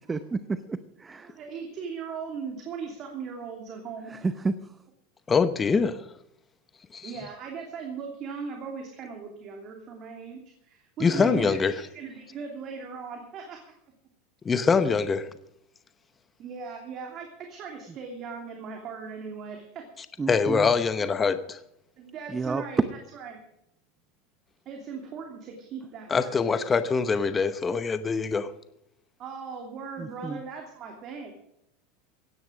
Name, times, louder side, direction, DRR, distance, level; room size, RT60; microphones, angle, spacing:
voice 1, 0.1-1.3 4.1-4.5 11.1-11.5 20.2-20.7 22.3-22.6 30.0-30.4, right 4 dB, 15° right, 0.7 m, -31 dB
voice 2, 1.2-4.1 7.0-13.8 16.4-19.9 22.0-23.4 24.6-26.6 29.2-31.3, right 5 dB, 40° right, 2.8 m, -39 dB
voice 3, 5.3-6.0 6.9-7.1 11.0-11.8 14.4-15.3 20.3-21.6 26.1-28.5, left 5 dB, 20° left, 0.9 m, -24 dB
16.5 x 10.0 x 6.3 m
supercardioid pair, 135°, 0 cm